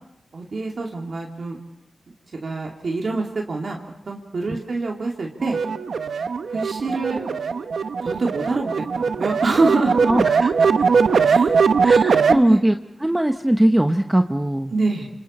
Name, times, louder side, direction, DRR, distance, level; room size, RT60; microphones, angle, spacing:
voice 1, 0.3-1.6 2.4-3.8 4.1-5.6 6.5-7.2 8.0-10.1 11.2-11.5 12.3-12.6 14.7-15.1, right 3 dB, 60° right, 0 dB, 2.6 m, -25 dB
sound 1, 5.4-12.4, right 5 dB, 80° right, 0.9 m, -20 dB
voice 2, 10.1-10.7 11.8-12.7 13.0-14.7, right 1 dB, 15° right, 6 dB, 1.0 m, -20 dB
27.5 x 27.0 x 4.4 m, 0.83 s
cardioid pair, 75°, 0 cm